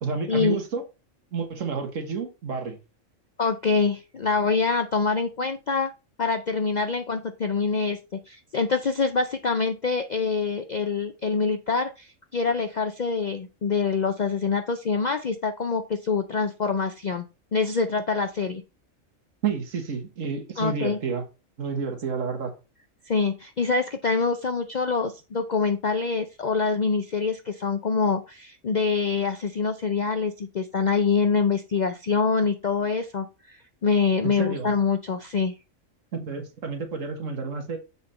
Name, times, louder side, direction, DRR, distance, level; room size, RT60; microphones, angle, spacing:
voice 1, 0.0-0.9 1.3-2.8 19.4-21.2 21.6-22.6 34.2-34.7 36.1-37.8, right 5 dB, 70° right, 1.7 m, -30 dB
voice 2, 3.4-5.9 6.2-8.0 8.3-17.2 17.5-18.6 20.6-21.0 23.1-35.5, left 4 dB, 55° left, 0.5 m, -25 dB
7.0 x 4.0 x 4.2 m
omnidirectional pair, 1.4 m